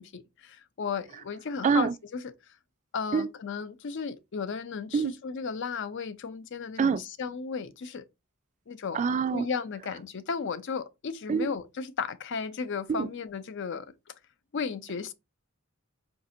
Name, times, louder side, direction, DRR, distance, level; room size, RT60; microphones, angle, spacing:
voice 1, 0.0-2.3 2.9-8.1 8.7-9.0 9.3-13.9 14.5-15.1, left 5 dB, 60° left, 0.5 m, -35 dB
voice 2, 8.9-9.5 11.3-11.5 12.9-13.1, right 5 dB, 35° right, 0.3 m, -25 dB
4.8 x 2.6 x 2.6 m
head